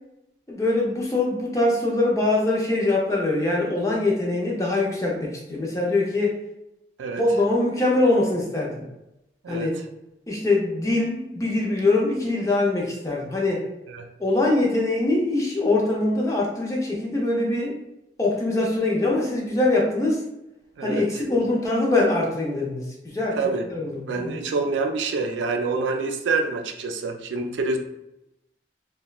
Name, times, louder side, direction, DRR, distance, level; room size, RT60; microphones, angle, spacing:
voice 1, 0.5-6.3 7.2-8.8 9.5-9.7 10.3-13.7 14.2-17.8 18.2-20.2 20.8-23.4 23.7-24.4, left 2 dB, 20° left, -3 dB, 0.5 m, -23 dB
voice 2, 24.1-27.8, right 3 dB, 90° right, 5 dB, 0.4 m, -26 dB
2.9 x 2.2 x 2.3 m, 0.89 s
head